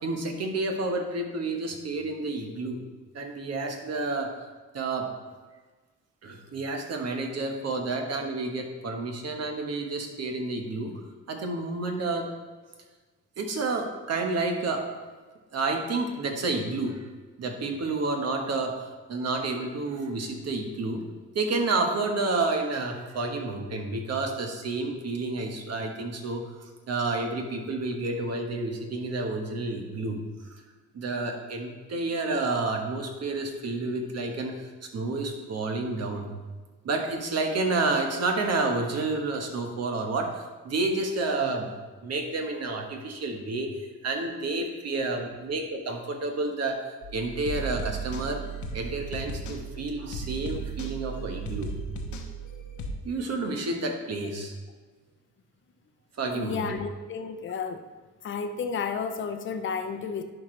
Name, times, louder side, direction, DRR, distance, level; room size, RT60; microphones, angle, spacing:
voice 1, 0.0-2.8 3.1-4.3 4.7-5.1 6.2-10.9 11.3-12.3 13.4-14.9 15.5-17.0 17.4-21.0 21.3-26.4 26.9-30.2 30.9-36.3 36.8-41.7 42.0-43.8 44.0-46.8 47.1-48.4 48.7-51.7 53.0-54.5 56.2-56.8, right 3 dB, 55° right, 3 dB, 1.3 m, -30 dB
sound 1, 47.0-52.9, right 3 dB, 75° left, 1.0 m, -36 dB
voice 2, 56.3-57.8 58.2-60.2, left 5 dB, 40° left, 7 dB, 0.6 m, -32 dB
11.0 x 4.4 x 3.3 m, 1.4 s
cardioid pair, 90°, 30 cm